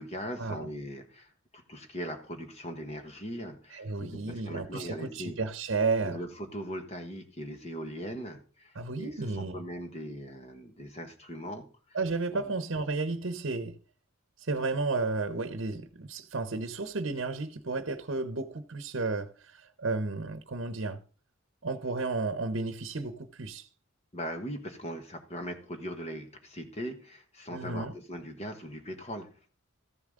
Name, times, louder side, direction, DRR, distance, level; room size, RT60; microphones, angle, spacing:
voice 1, 0.0-5.4 6.0-11.7 12.3-12.5 24.1-29.3, equal, 30° left, 1.4 m, -40 dB
voice 2, 3.7-6.2 8.8-9.6 11.9-13.8 14.4-21.0 21.6-23.7 27.5-28.0, right 3 dB, 60° right, 0.9 m, -32 dB
14.0 x 7.1 x 3.7 m
head